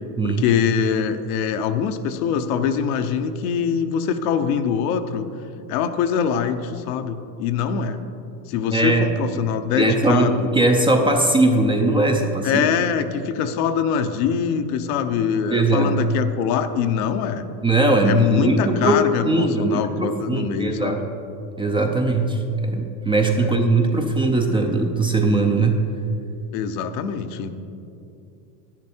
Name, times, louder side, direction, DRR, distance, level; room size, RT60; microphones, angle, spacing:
voice 1, 0.2-5.3 5.7-8.0 8.5-10.5 12.4-17.4 18.0-21.0 23.4-23.5 26.5-27.5, left 7 dB, 60° left, 8 dB, 0.9 m, -23 dB
voice 2, 8.7-9.1 9.8-12.6 15.5-16.0 17.6-21.0 21.6-25.8, right 2 dB, 10° right, 3 dB, 0.5 m, -20 dB
10.0 x 9.7 x 4.4 m, 2.6 s
supercardioid pair, 120°, 49 cm